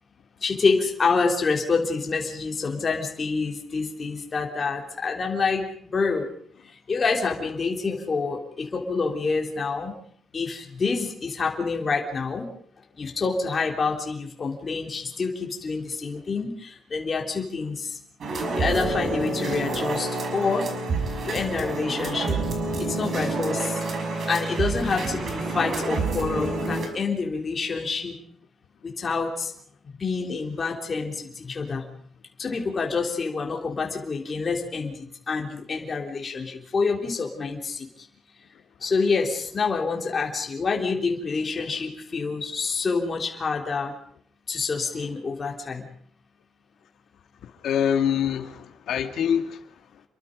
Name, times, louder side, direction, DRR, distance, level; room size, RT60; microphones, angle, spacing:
voice 1, 0.4-5.7 5.9-6.3 6.7-10.0 10.3-12.5 13.0-18.0 18.5-20.7 21.2-22.4 22.6-23.8 24.3-28.2 28.8-29.5 30.0-31.8 32.4-38.1 38.8-43.9 44.5-45.8, left 4 dB, 30° left, 3.5 m, -27 dB
sound 1, 18.2-26.9, right 3 dB, 45° right, 5.6 m, -28 dB
voice 2, 47.4-50.0, left 8 dB, 75° left, 2.4 m, -26 dB
28.5 x 22.5 x 5.3 m
cardioid pair, 165°, 0 cm